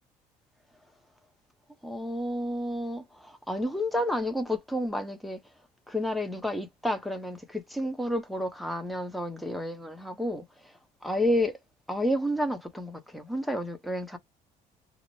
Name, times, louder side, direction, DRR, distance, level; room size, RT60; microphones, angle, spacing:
voice 1, 1.8-5.4 5.9-10.7 11.0-11.6 11.9-14.2, left 1 dB, ahead, 0.6 m, -30 dB
2.4 x 2.0 x 3.0 m
cardioid pair, 130°, 15 cm